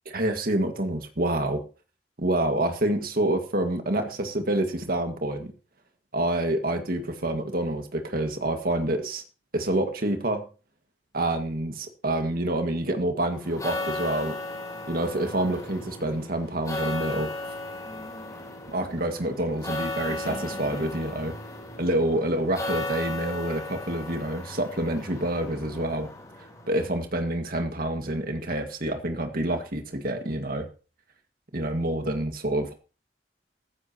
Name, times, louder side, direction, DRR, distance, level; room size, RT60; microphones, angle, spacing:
voice 1, 0.1-1.6 2.2-5.5 6.1-9.2 9.5-10.5 11.1-14.4 14.9-17.3 18.7-21.3 21.8-26.1 26.7-30.7 31.5-32.7, right 1 dB, 55° right, 5 dB, 2.0 m, -27 dB
sound 1, 13.4-26.9, left 2 dB, 20° left, 3.8 m, -36 dB
14.5 x 14.0 x 3.0 m, 0.35 s
head